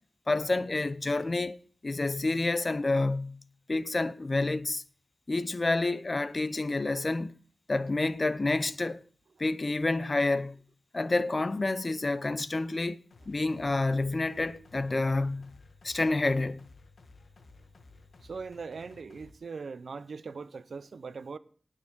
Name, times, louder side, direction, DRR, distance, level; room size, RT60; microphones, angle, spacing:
voice 1, 0.3-3.4 3.7-4.8 5.3-7.3 7.7-9.0 9.4-10.6 10.9-13.0 13.3-15.5 15.8-16.7, left 2 dB, 40° left, 0.6 m, -29 dB
sound 1, 13.1-19.3, left 3 dB, 80° left, 1.6 m, -55 dB
voice 2, 18.2-21.4, right 4 dB, 75° right, 0.7 m, -40 dB
19.0 x 6.5 x 3.6 m
wide cardioid pair, 70°, 0 cm